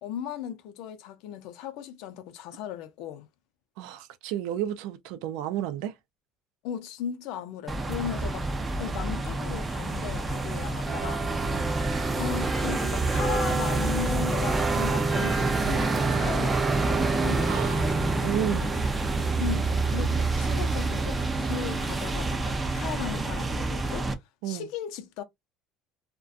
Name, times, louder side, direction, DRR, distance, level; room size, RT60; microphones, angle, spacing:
voice 1, 0.0-3.3 6.6-8.5 8.8-11.3 12.1-18.1 19.4-24.1 24.4-25.2, left 9 dB, 70° left, 0.5 m, -37 dB
voice 2, 3.8-5.9 11.4-11.7 17.5-17.9 18.2-18.7 24.4-24.7, right 11 dB, 75° right, 0.4 m, -32 dB
sound 1, 7.7-24.1, right 3 dB, 15° right, 0.4 m, -27 dB
2.4 x 2.2 x 2.5 m
cardioid pair, 160°, 0 cm